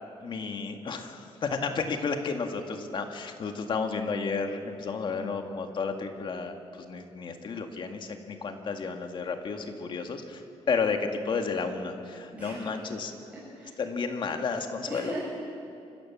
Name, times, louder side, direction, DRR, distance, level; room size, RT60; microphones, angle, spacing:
voice 1, 0.2-6.5 6.9-10.4 10.7-13.1 13.8-15.2, left 5 dB, 45° left, 5 dB, 2.0 m, -32 dB
voice 2, 12.3-12.8 13.3-13.7 14.9-15.2, right 1 dB, 10° right, -8 dB, 6.8 m, -39 dB
27.5 x 16.0 x 7.5 m, 2.5 s
cardioid pair, 135°, 11 cm